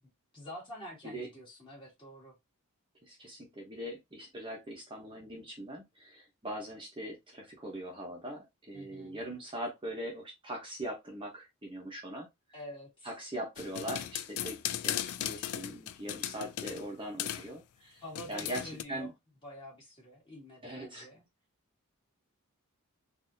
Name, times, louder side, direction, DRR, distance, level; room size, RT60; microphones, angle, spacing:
voice 1, 0.3-2.3 8.7-9.2 12.5-13.1 18.0-19.1 19.4-21.2, equal, 25° left, 2.1 m, -47 dB
voice 2, 3.0-12.3 13.0-18.0 18.3-18.6 18.9-19.1 20.6-21.1, right 1 dB, 25° right, 1.0 m, -41 dB
sound 1, 13.6-16.9 17.2-17.5 18.1-18.8, left 11 dB, 85° left, 0.4 m, -36 dB
4.0 x 2.7 x 2.6 m
head